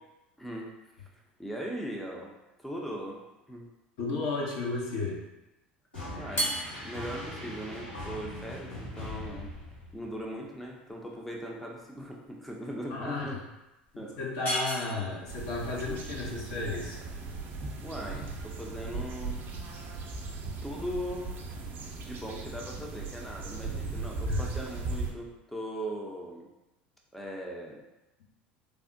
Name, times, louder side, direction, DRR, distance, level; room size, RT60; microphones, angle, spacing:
voice 1, 1.4-2.3 2.6-3.2 3.5-3.7 6.1-6.5 6.8-9.5 9.9-13.4 13.9-14.3 17.8-19.4 20.6-21.3 22.0-26.5 27.1-27.8, equal, 5° left, -2 dB, 0.5 m, -39 dB
voice 2, 4.0-5.2 12.9-13.4 14.2-17.0 24.2-24.4, left 3 dB, 65° left, -2 dB, 0.8 m, -33 dB
sound 1, 5.9-10.2, left 1 dB, 90° left, 1.4 m, -41 dB
sound 2, 6.2-18.7, equal, 45° left, 1.1 m, -40 dB
sound 3, 15.3-25.1, right 3 dB, 45° right, 0.5 m, -37 dB
3.4 x 2.0 x 2.6 m, 0.96 s
hypercardioid pair, 75°, 5 cm